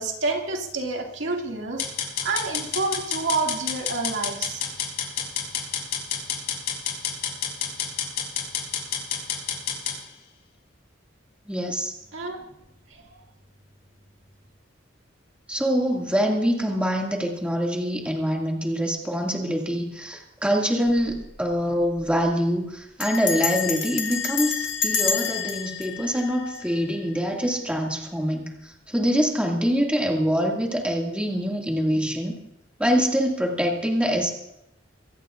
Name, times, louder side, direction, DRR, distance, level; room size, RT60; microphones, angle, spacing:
voice 1, 0.0-4.6 12.1-12.4 12.9-13.0, right 3 dB, 70° right, 0 dB, 2.3 m, -28 dB
sound 1, 1.8-10.0, left 7 dB, 55° left, 6.0 m, -29 dB
voice 2, 11.5-11.9 15.5-32.3 32.8-34.3, equal, 5° right, -1 dB, 2.2 m, -25 dB
Bell, 20.9-21.2 21.5-21.6 21.8-22.2 23.0-27.1, left 7 dB, 70° left, 2.0 m, -28 dB
24.0 x 17.0 x 2.5 m, 0.84 s
head